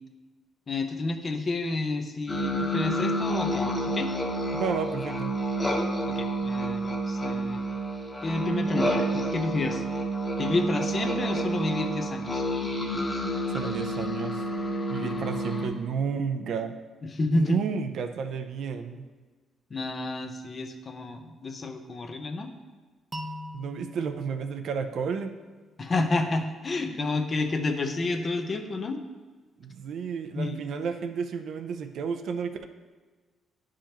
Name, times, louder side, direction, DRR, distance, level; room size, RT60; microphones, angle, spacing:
voice 1, 0.7-4.1 6.1-7.6 8.2-9.8 10.4-12.4 15.0-15.1 17.1-17.6 19.7-22.5 25.8-29.0 30.3-30.6, left 2 dB, 40° left, 5 dB, 0.8 m, -30 dB
sound 1, 2.3-15.7, right 1 dB, 15° left, 1.6 m, -29 dB
voice 2, 4.5-5.4 13.5-14.4 14.9-16.8 17.3-19.1 23.5-25.3 29.6-32.6, right 6 dB, 70° right, 7 dB, 0.5 m, -31 dB
sound 2, 23.1-26.0, left 1 dB, 20° right, 0.7 m, -43 dB
10.5 x 4.9 x 2.9 m, 1.3 s
cardioid pair, 90°, 0 cm